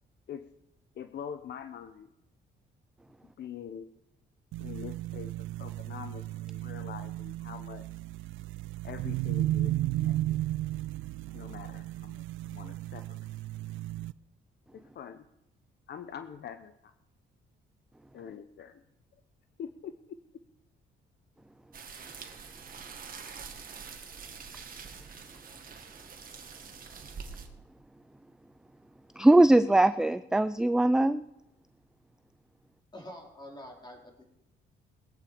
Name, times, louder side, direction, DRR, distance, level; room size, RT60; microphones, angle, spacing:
voice 1, 1.0-2.1 3.4-3.9 4.6-7.9 8.8-10.4 11.3-13.1 14.7-15.2 15.9-16.7 18.1-18.8 19.6-20.2, left 8 dB, 60° left, 10 dB, 0.8 m, -44 dB
sound 1, 4.5-14.1, right 15 dB, 80° right, 0.4 m, -34 dB
sound 2, 21.7-27.5, right 6 dB, 45° right, 1.8 m, -45 dB
voice 2, 29.2-31.2, right 1 dB, 5° right, 12 dB, 0.4 m, -21 dB
voice 3, 32.9-34.2, left 1 dB, 20° left, 0 dB, 4.1 m, -46 dB
20.5 x 8.5 x 5.0 m, 0.85 s
cardioid pair, 90°, 20 cm